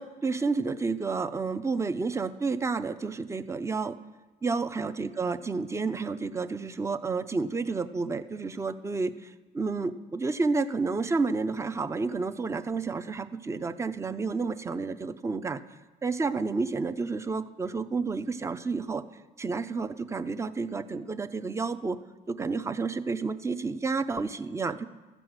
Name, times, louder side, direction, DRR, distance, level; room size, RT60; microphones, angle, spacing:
voice 1, 0.0-3.9 4.4-15.6 16.0-19.0 19.4-22.0 22.3-24.9, right 4 dB, 15° right, 11 dB, 0.5 m, -30 dB
14.0 x 7.7 x 6.4 m, 1.2 s
cardioid pair, 110°, 17 cm